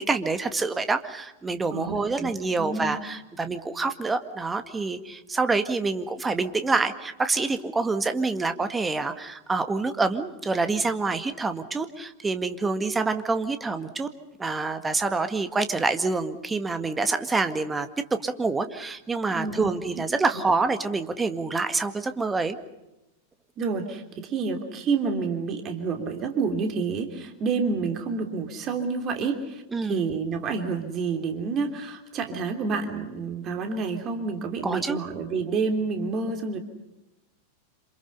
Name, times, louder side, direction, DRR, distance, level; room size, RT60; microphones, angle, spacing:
voice 1, 0.0-14.1 14.4-22.6 29.7-30.0 34.6-35.0, right 3 dB, 15° right, 9 dB, 1.9 m, -27 dB
voice 2, 1.7-2.3 2.6-2.9 19.3-19.7 20.3-20.4 23.6-36.6, right 4 dB, 30° right, 5 dB, 3.2 m, -29 dB
27.5 x 27.5 x 5.6 m, 0.95 s
figure-of-eight pair, 90°, 0 cm